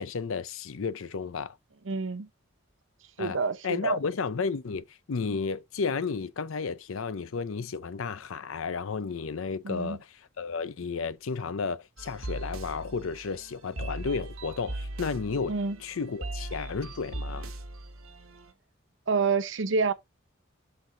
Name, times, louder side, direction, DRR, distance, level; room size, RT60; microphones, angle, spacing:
voice 1, 0.0-1.6 3.2-3.4 3.6-15.5 15.8-17.5, left 5 dB, 75° left, 0.5 m, -33 dB
voice 2, 1.9-2.3 3.2-4.0 9.6-10.0 15.5-15.8 19.1-19.9, right 4 dB, 65° right, 0.8 m, -28 dB
sound 1, 12.0-18.5, right 1 dB, 80° right, 1.2 m, -39 dB
6.0 x 3.8 x 5.9 m
head